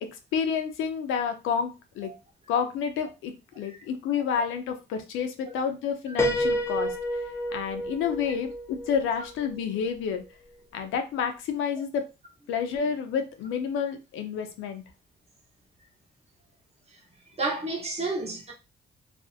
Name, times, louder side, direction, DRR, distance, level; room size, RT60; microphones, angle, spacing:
voice 1, 0.0-2.1 2.5-6.9 7.5-10.2 10.7-12.1 12.5-14.8, left 7 dB, 85° left, 0.5 m, -29 dB
Piano, 6.2-9.9, equal, 15° left, 0.4 m, -30 dB
voice 2, 17.4-18.5, right 2 dB, 30° right, 0.9 m, -31 dB
2.5 x 2.0 x 2.6 m
cardioid pair, 90°, 20 cm